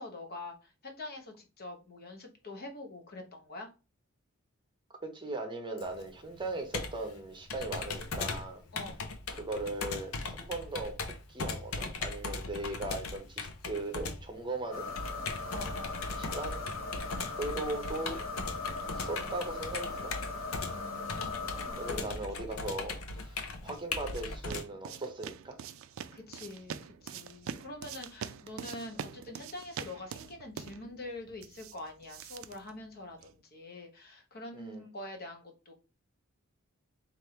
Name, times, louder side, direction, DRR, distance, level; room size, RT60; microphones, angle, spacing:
voice 1, 0.0-3.7 8.7-9.0 15.5-16.0 20.7-22.2 22.5-22.6 26.1-35.7, left 2 dB, 50° left, 3 dB, 1.0 m, -45 dB
voice 2, 5.0-8.6 9.3-14.9 16.1-16.7 17.4-18.2 18.9-20.1 21.8-25.6 34.5-34.8, right 2 dB, 25° right, 4 dB, 0.7 m, -38 dB
Computer keyboard, 5.8-24.6, left 3 dB, 90° left, 0.6 m, -39 dB
sound 1, 14.7-22.0, left 3 dB, 70° left, 1.6 m, -39 dB
sound 2, 23.4-33.4, right 7 dB, 70° right, 0.3 m, -45 dB
3.3 x 2.6 x 4.3 m, 0.32 s
head